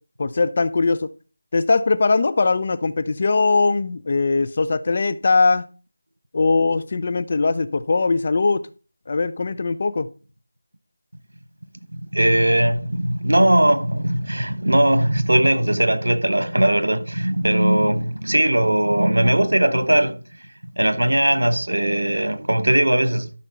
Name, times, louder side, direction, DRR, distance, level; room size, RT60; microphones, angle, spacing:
voice 1, 0.2-1.1 1.5-5.6 6.3-8.6 9.1-10.1, left 3 dB, 40° left, 0.6 m, -20 dB
voice 2, 11.9-20.2 20.8-23.3, right 1 dB, 85° right, 1.1 m, -19 dB
12.5 x 5.8 x 4.0 m
figure-of-eight pair, 170°, 0 cm